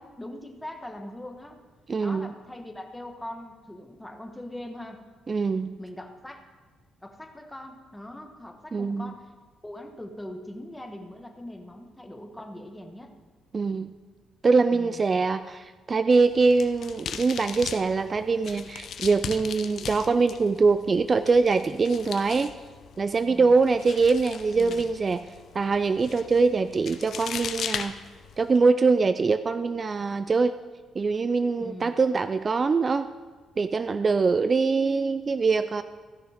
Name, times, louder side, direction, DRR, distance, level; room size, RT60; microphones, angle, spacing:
voice 1, 0.2-1.6 2.0-5.1 5.8-6.4 7.0-9.3 9.6-13.1 14.7-15.1 23.2-23.6 24.5-24.9 31.6-32.0, left 1 dB, 10° left, 4 dB, 1.4 m, -41 dB
voice 2, 1.9-2.3 5.3-5.8 8.7-9.1 13.5-13.9 14.4-22.5 23.0-25.2 25.5-28.0 28.4-30.5 31.0-33.1 33.6-35.8, right 4 dB, 35° right, 12 dB, 0.3 m, -23 dB
sound 1, 16.2-28.6, left 7 dB, 65° left, 0.7 m, -39 dB
15.0 x 6.5 x 5.1 m, 1.4 s
cardioid pair, 90°, 0 cm